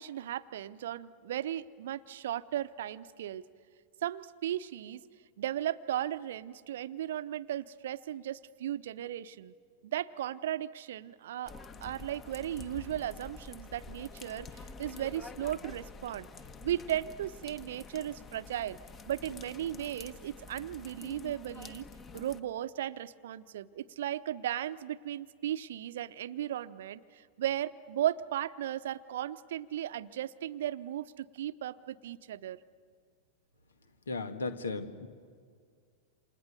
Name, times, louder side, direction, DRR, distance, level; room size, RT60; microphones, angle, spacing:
voice 1, 0.0-3.4 4.0-5.0 5.4-9.5 9.9-11.5 11.8-16.3 16.6-18.8 19.1-21.9 22.1-32.6, right 11 dB, 60° right, 15 dB, 0.8 m, -36 dB
sound 1, 11.4-22.4, left 4 dB, 25° left, 1.5 m, -48 dB
voice 2, 34.1-35.1, left 3 dB, 70° left, 9 dB, 1.9 m, -35 dB
29.0 x 27.5 x 6.8 m, 2.1 s
figure-of-eight pair, 90°, 0 cm